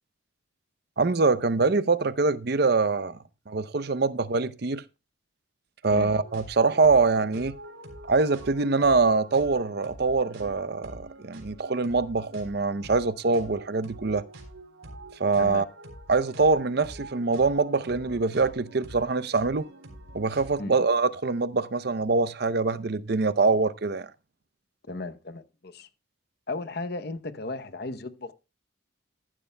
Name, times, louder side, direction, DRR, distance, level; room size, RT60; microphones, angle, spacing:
voice 1, 1.0-3.2 3.5-4.8 5.8-7.6 8.1-14.2 15.2-15.6 16.1-19.6 20.1-24.1, right 4 dB, 50° right, 0.6 m, -24 dB
sound 1, 5.8-20.7, right 1 dB, 90° right, 3.8 m, -46 dB
voice 2, 24.9-25.9 26.5-28.3, left 2 dB, 50° left, 0.8 m, -35 dB
15.0 x 11.0 x 2.2 m
head